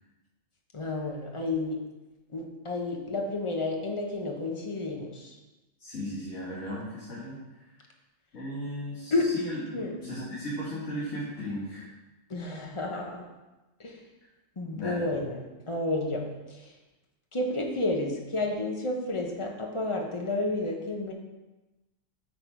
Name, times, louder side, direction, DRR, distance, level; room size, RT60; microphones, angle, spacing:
voice 1, 0.7-1.8 2.3-5.4 9.1-9.3 9.7-10.0 12.3-13.2 13.8-14.0 14.6-15.4 15.7-16.2 16.5-16.7 17.3-21.1, left 2 dB, 25° left, 1 dB, 0.8 m, -31 dB
voice 2, 5.8-7.4 8.3-11.9 14.7-15.0, equal, 55° left, -8 dB, 1.9 m, -36 dB
8.6 x 3.9 x 4.5 m, 1.1 s
omnidirectional pair, 1.5 m